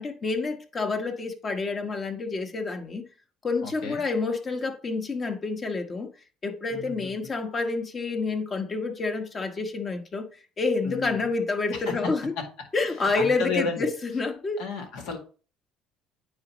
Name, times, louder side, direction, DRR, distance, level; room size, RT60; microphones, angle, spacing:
voice 1, 0.0-3.0 3.4-6.1 6.4-12.3 12.7-14.6, left 3 dB, 35° left, 1.2 m, -28 dB
voice 2, 3.6-4.0 6.7-7.1 10.8-11.3 11.7-12.1 13.1-13.9 14.6-15.2, left 4 dB, 80° left, 2.1 m, -32 dB
9.4 x 4.0 x 3.0 m
supercardioid pair, 90°, 0 cm